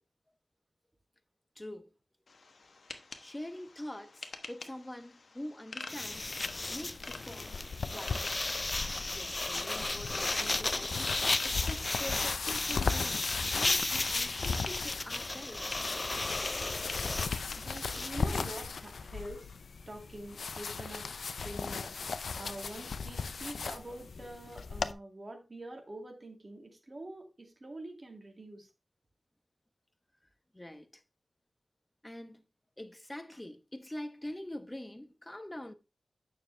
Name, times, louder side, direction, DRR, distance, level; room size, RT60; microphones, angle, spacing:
voice 1, 1.6-1.9 3.2-6.3 6.7-7.6 7.9-8.4 9.1-15.7 30.5-31.0 32.0-32.4 32.8-35.7, left 1 dB, 15° left, 1.0 m, -45 dB
sound 1, 2.3-19.0, left 3 dB, 70° left, 1.1 m, -47 dB
sound 2, 5.9-18.1, left 2 dB, 35° left, 0.5 m, -34 dB
sound 3, 6.1-24.9, left 5 dB, 90° left, 0.6 m, -38 dB
voice 2, 17.5-19.5 19.9-21.1 21.4-22.0 22.4-28.7, right 1 dB, 40° right, 2.2 m, -45 dB
9.3 x 6.4 x 3.3 m
wide cardioid pair, 70°, 0 cm